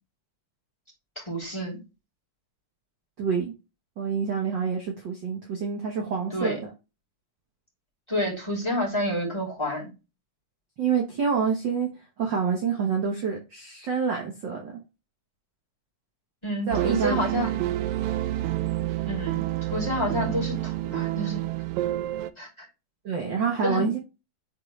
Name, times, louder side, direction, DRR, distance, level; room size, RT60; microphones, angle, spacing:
voice 1, 1.2-1.8 6.3-6.6 8.1-9.9 16.4-17.5 19.1-21.4 22.4-22.7 23.6-24.0, equal, 10° left, -1 dB, 2.6 m, -29 dB
voice 2, 3.2-3.5 4.0-6.6 10.8-11.9 12.2-14.7 16.7-17.2 23.0-24.0, right 6 dB, 55° right, 1 dB, 1.3 m, -27 dB
sound 1, 16.7-22.3, right 14 dB, 80° right, 1.9 m, -28 dB
9.7 x 3.8 x 3.2 m, 0.28 s
omnidirectional pair, 3.6 m